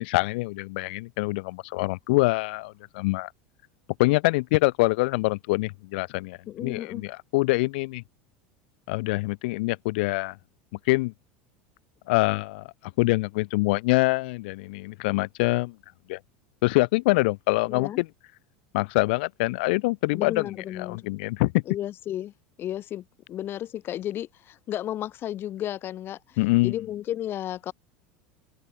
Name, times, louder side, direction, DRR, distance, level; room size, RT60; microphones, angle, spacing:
voice 1, 0.0-3.3 4.0-8.0 8.9-10.4 10.9-11.1 12.1-12.7 13.0-15.7 16.1-16.2 16.6-18.1 18.7-20.5 20.8-21.6 26.4-26.8, left 24 dB, 70° left, 1.1 m, -25 dB
voice 2, 6.5-7.1 17.7-18.0 20.1-21.1 21.7-27.7, left 12 dB, 45° left, 2.2 m, -33 dB
supercardioid pair, 105°, 6 cm